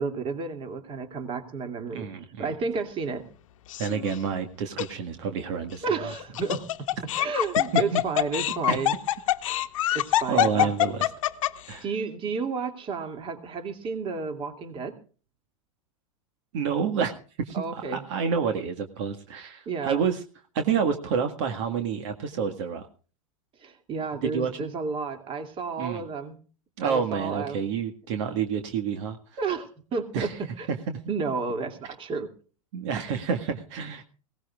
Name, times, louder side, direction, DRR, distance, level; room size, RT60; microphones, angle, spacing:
voice 1, 0.0-2.1 2.4-3.3 5.8-6.7 7.0-9.0 9.9-10.7 11.8-15.0 17.5-18.0 19.7-20.0 23.6-26.4 26.8-27.6 29.4-30.7 31.1-32.3, right 4 dB, 30° right, 8 dB, 2.5 m, -31 dB
voice 2, 1.9-2.5 3.8-5.8 7.7-8.0 8.7-8.8 10.3-11.0 11.7-11.8 16.5-17.1 17.4-20.2 20.5-22.9 24.2-24.7 25.8-26.0 26.8-29.2 30.1-30.4 30.9-31.0 32.7-34.0, right 6 dB, 60° right, 6 dB, 1.8 m, -28 dB
Laughter, 3.7-4.2 4.8-4.9 6.1-11.7, left 14 dB, 70° left, 1.1 m, -25 dB
21.5 x 17.5 x 2.4 m, 0.39 s
hypercardioid pair, 115°, 17 cm